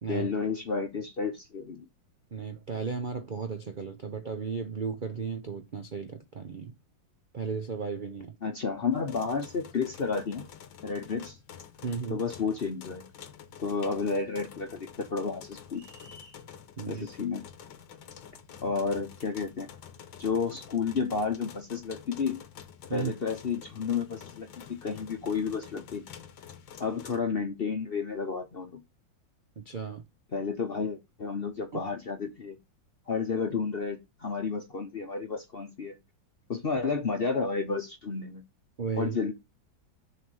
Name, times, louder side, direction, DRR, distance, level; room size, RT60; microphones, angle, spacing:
voice 1, 0.1-1.8 8.4-10.5 10.8-11.4 12.1-13.0 13.6-15.8 16.9-17.4 18.6-19.7 20.2-22.4 22.9-26.0 26.8-28.8 30.3-32.6 33.1-36.0 36.5-38.4 39.0-39.3, left 5 dB, 45° left, 0.8 m, -31 dB
voice 2, 2.3-6.7 7.3-8.4 11.8-12.2 16.8-17.1 22.9-23.1 29.6-30.0 38.8-39.2, right 5 dB, 90° right, 0.4 m, -34 dB
sound 1, 8.9-27.2, left 8 dB, 80° left, 1.7 m, -48 dB
sound 2, 15.7-16.4, left 1 dB, 40° right, 1.7 m, -52 dB
7.0 x 3.4 x 6.2 m
omnidirectional pair, 2.0 m